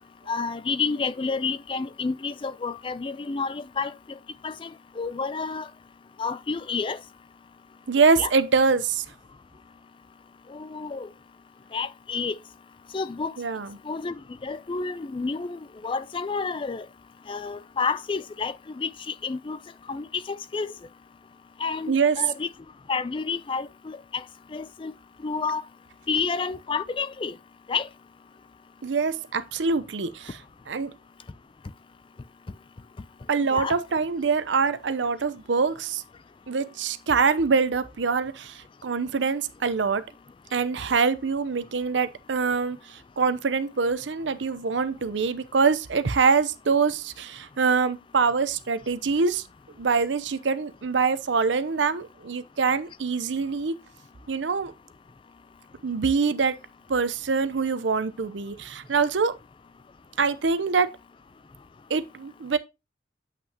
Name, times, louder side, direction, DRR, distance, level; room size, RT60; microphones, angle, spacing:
voice 1, 0.3-3.9 4.4-4.7 5.0-5.7 6.2-7.0 8.2-8.3 10.5-11.1 11.7-12.4 12.9-13.3 13.9-14.1 14.4-16.9 17.3-19.6 19.9-20.7 21.6-22.5 22.9-24.2 24.5-24.9 25.2-25.6 26.1-27.4 27.7-27.9 33.5-33.8, left 4 dB, 30° left, 0.4 m, -30 dB
voice 2, 7.9-9.1 13.4-13.8 21.9-22.2 28.8-30.4 30.7-30.9 33.3-36.0 36.5-40.0 40.5-49.4 49.8-53.8 54.3-54.7 55.8-56.6 56.9-59.4 60.2-60.9 61.9-62.6, right 5 dB, 85° right, 0.7 m, -24 dB
8.4 x 5.6 x 2.8 m
head